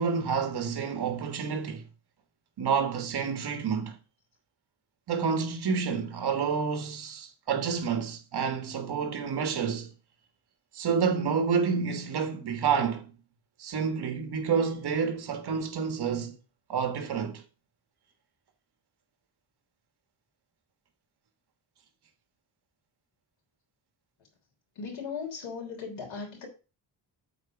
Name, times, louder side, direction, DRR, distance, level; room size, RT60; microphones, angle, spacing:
voice 1, 0.0-1.9 2.6-4.0 5.1-9.9 10.7-13.1 13.6-16.4 16.7-17.4, right 6 dB, 60° right, 1.5 m, -29 dB
voice 2, 24.8-26.5, left 5 dB, 85° left, 3.4 m, -37 dB
7.8 x 4.3 x 5.9 m
wide cardioid pair, 150°, 44 cm